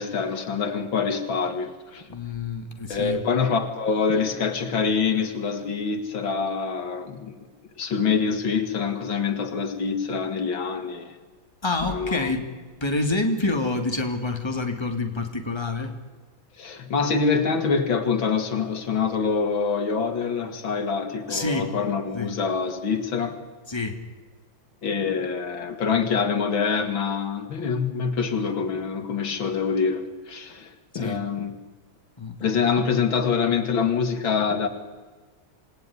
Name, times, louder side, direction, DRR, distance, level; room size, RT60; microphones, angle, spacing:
voice 1, 0.0-2.1 2.9-7.4 7.8-11.2 11.9-12.3 16.6-23.4 24.8-31.6 32.4-34.7, left 5 dB, 80° left, 2.8 m, -25 dB
voice 2, 2.1-3.2 11.6-12.5 12.8-15.9 21.3-21.7 22.1-22.3 23.7-24.0 30.9-31.2 32.2-32.6, left 2 dB, 15° left, 2.8 m, -27 dB
27.5 x 19.0 x 9.8 m
omnidirectional pair, 2.1 m